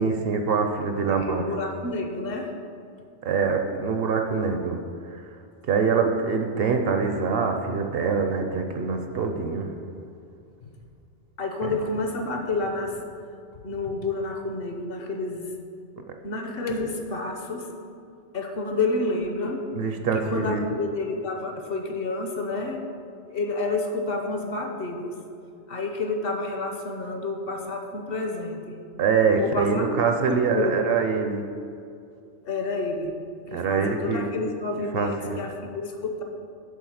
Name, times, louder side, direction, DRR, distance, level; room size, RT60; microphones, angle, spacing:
voice 1, 0.0-1.4 3.2-4.8 5.1-5.2 5.7-9.7 11.6-11.7 19.7-20.6 29.0-31.4 33.5-34.3 34.9-35.4, right 5 dB, 60° right, 5 dB, 0.8 m, -24 dB
voice 2, 1.0-2.5 10.6-10.7 11.4-13.0 13.6-15.5 16.2-17.7 18.3-19.6 20.1-22.9 23.3-25.1 25.7-28.8 29.4-30.8 32.4-33.1 33.5-36.2, left 3 dB, 55° left, 3 dB, 1.0 m, -29 dB
8.4 x 3.6 x 6.3 m, 2.5 s
omnidirectional pair, 1.2 m